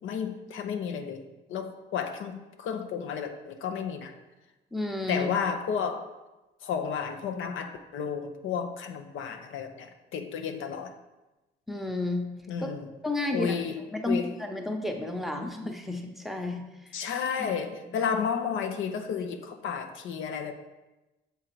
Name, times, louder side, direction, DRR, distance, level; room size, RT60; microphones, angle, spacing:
voice 1, 0.0-4.1 5.1-6.1 6.6-10.9 12.5-12.9 13.3-14.3 16.9-20.5, left 7 dB, 80° left, 6 dB, 0.7 m, -32 dB
voice 2, 4.7-5.3 11.7-12.3 12.6-12.7 13.0-13.6 13.9-16.6 17.4-17.6 17.9-18.0, left 2 dB, ahead, 3 dB, 0.8 m, -31 dB
6.9 x 3.8 x 4.5 m, 1.0 s
cardioid pair, 90°, 20 cm